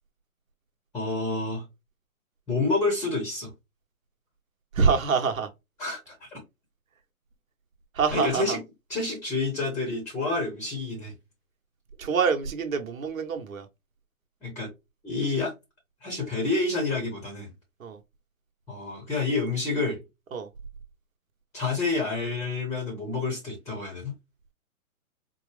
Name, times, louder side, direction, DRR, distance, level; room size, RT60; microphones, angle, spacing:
voice 1, 0.9-1.6 2.5-3.5 5.8-6.4 8.1-8.6 8.9-11.1 14.4-14.7 15.0-15.5 16.0-17.5 18.7-20.0 21.5-24.1, left 3 dB, 5° left, 0.8 m, -28 dB
voice 2, 4.7-5.5 7.9-8.6 12.0-13.7 17.8-18.0 20.3-20.5, right 5 dB, 70° right, 1.1 m, -25 dB
4.4 x 2.0 x 3.2 m
hypercardioid pair, 140°, 43 cm